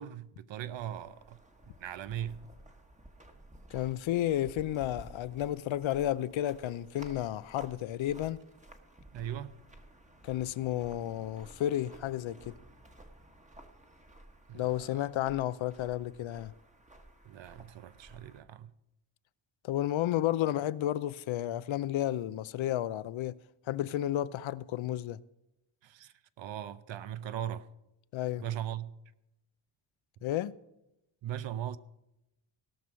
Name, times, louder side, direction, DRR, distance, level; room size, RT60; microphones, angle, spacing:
voice 1, 0.0-1.4 1.8-2.4 9.1-9.6 14.5-15.1 17.2-18.7 25.8-27.7 28.4-29.0 31.2-31.8, right 10 dB, 65° right, 0.7 m, -39 dB
sound 1, 0.7-18.4, right 1 dB, 15° right, 1.2 m, -54 dB
voice 2, 3.7-8.4 10.2-12.6 14.5-16.5 19.6-23.4 23.7-25.2 28.1-28.4 30.2-30.5, left 13 dB, 70° left, 0.6 m, -32 dB
17.0 x 6.1 x 6.2 m
cardioid pair, 105°, 48 cm